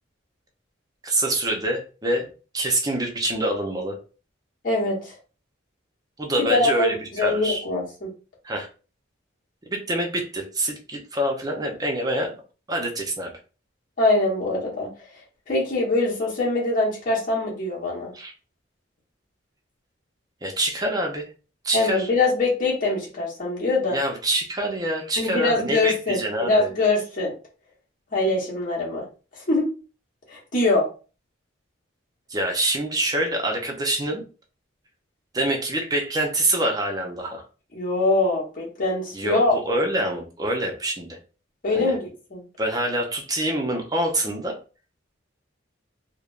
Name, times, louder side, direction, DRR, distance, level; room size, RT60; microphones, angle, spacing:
voice 1, 1.0-2.3 2.5-4.0 6.2-7.6 8.4-8.7 9.7-12.4 12.7-13.3 18.1-18.3 20.4-21.3 21.6-22.1 23.9-26.7 32.3-34.2 35.3-37.4 39.1-41.2 41.7-41.9 42.6-44.6, right 1 dB, 20° right, 1 dB, 0.6 m, -26 dB
voice 2, 4.6-5.2 6.5-8.1 14.0-14.9 15.5-18.1 21.7-24.0 25.2-27.3 28.1-29.0 29.5-29.7 30.3-30.8 37.7-39.5 41.6-42.0 42.3-42.4, left 2 dB, 45° left, -5 dB, 1.1 m, -23 dB
3.2 x 2.1 x 2.4 m, 0.35 s
head